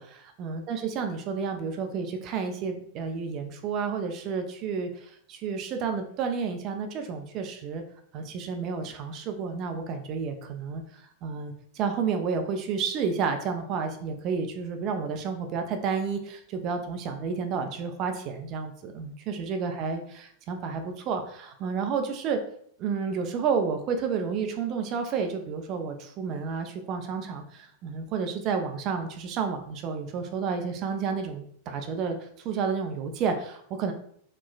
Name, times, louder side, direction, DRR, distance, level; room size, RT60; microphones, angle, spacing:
voice 1, 0.0-7.8 8.1-22.4 22.8-33.9, right 5 dB, 40° right, 6 dB, 0.4 m, -31 dB
2.9 x 2.2 x 2.2 m, 0.63 s
figure-of-eight pair, 90°, 0 cm